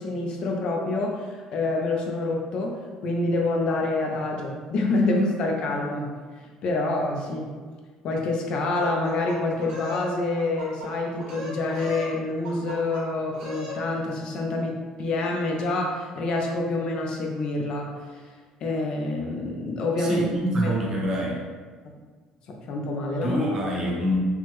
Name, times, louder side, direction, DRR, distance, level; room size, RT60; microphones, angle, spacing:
voice 1, 0.0-2.8 3.0-6.1 6.6-7.5 8.0-18.2 18.6-20.3 20.6-20.7 22.5-23.4, left 2 dB, 45° left, 1 dB, 0.4 m, -27 dB
sound 1, 8.8-10.1 10.4-10.9 11.2-12.1 12.4-13.0 13.3-13.8, equal, 85° right, 1.2 m, -37 dB
voice 2, 20.0-21.4 23.2-24.3, equal, 25° right, -2 dB, 0.5 m, -26 dB
3.3 x 2.1 x 3.0 m, 1.5 s
cardioid pair, 165°, 2 cm